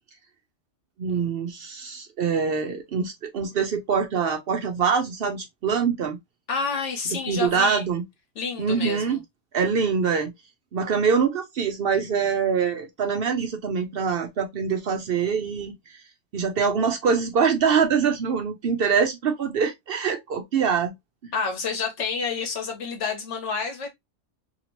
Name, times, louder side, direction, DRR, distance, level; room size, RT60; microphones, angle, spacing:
voice 1, 1.0-6.2 7.3-8.0 8.6-9.2 9.5-10.3 10.7-15.8 16.3-20.9 21.2-21.3, right 6 dB, 60° right, 0.7 m, -24 dB
voice 2, 6.5-7.9 8.3-9.2 21.3-23.9, left 5 dB, 70° left, 1.3 m, -29 dB
2.8 x 2.8 x 2.9 m
omnidirectional pair, 1.3 m